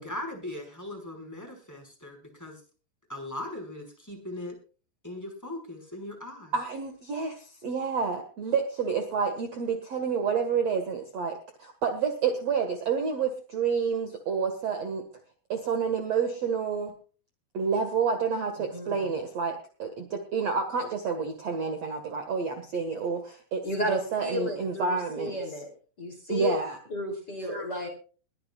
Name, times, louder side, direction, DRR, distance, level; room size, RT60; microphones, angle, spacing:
voice 1, 0.0-2.6 3.1-4.6 5.0-6.5, left 1 dB, 5° left, 2 dB, 4.7 m, -39 dB
voice 2, 6.5-15.0 15.5-16.9 17.5-25.4 26.3-26.8 27.5-27.7, right 6 dB, 50° right, 6 dB, 2.3 m, -29 dB
voice 3, 23.6-25.7 26.0-26.6 26.9-27.9, left 1 dB, 25° left, 3 dB, 3.5 m, -32 dB
22.0 x 14.0 x 2.4 m, 0.38 s
omnidirectional pair, 4.6 m